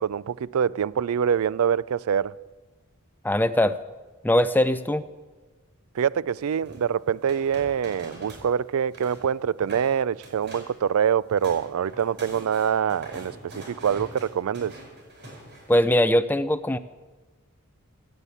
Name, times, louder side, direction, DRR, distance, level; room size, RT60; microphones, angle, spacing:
voice 1, 0.0-2.3 5.9-14.7, right 8 dB, 75° right, 0.4 m, -25 dB
voice 2, 3.2-3.7 4.2-5.0 15.7-16.8, left 1 dB, 10° left, 0.4 m, -21 dB
sound 1, 6.6-8.5 8.8-9.3 9.6-9.9 10.2-10.8 11.1-15.8, right 1 dB, 50° right, 5.7 m, -43 dB
17.0 x 7.5 x 8.2 m
head